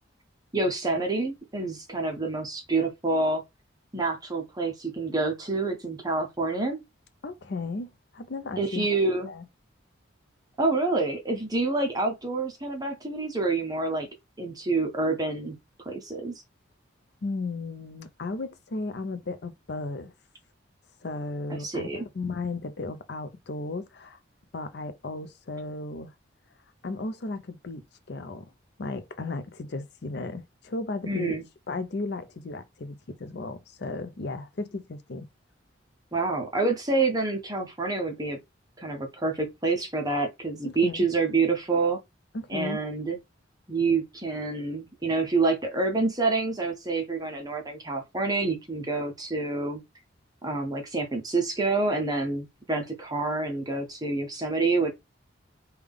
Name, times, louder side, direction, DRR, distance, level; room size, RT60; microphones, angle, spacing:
voice 1, 0.5-3.4 3.9-6.8 8.6-9.3 10.6-14.1 14.4-15.6 15.8-16.4 21.5-22.1 31.1-31.4 36.1-38.4 38.8-42.0 42.5-43.2 43.7-49.8 50.4-54.9, right 3 dB, 20° right, 0.6 m, -27 dB
voice 2, 7.2-9.0 9.3-9.5 17.2-20.1 21.0-24.2 24.5-26.1 26.8-27.8 28.1-28.5 28.8-31.4 31.7-35.3 40.6-41.0 42.3-42.8, left 3 dB, 55° left, 0.5 m, -35 dB
3.5 x 2.3 x 3.5 m
head